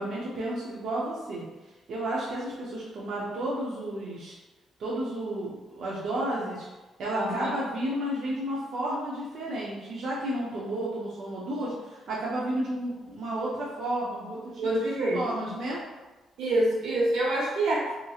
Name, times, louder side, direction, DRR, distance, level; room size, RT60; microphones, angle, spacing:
voice 1, 0.0-1.4 1.9-4.3 4.8-6.7 7.0-14.8 15.1-15.8, right 1 dB, 60° right, -6 dB, 0.6 m, -32 dB
voice 2, 7.1-7.5 14.6-15.5 16.4-17.9, right 1 dB, 90° right, -5 dB, 0.9 m, -27 dB
2.9 x 2.8 x 2.3 m, 1.1 s
cardioid pair, 150°, 0 cm